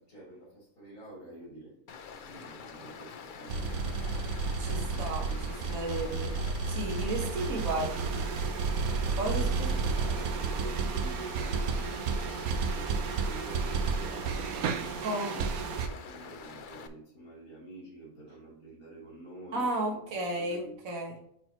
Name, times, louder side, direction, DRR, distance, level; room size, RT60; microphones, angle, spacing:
voice 1, 0.0-1.8 2.2-3.8 4.6-5.7 7.2-8.4 9.2-20.0 20.3-20.8, right 1 dB, 75° left, -7 dB, 3.5 m, -49 dB
Stream, 1.9-16.9, left 6 dB, 50° left, 0.6 m, -46 dB
sound 1, 3.5-15.9, right 4 dB, 85° right, 1.2 m, -32 dB
voice 2, 4.6-6.3 6.7-8.2 9.1-9.7 15.0-15.5 19.5-21.1, right 1 dB, 70° right, 1 dB, 1.8 m, -34 dB
9.3 x 4.5 x 3.0 m, 0.72 s
omnidirectional pair, 1.5 m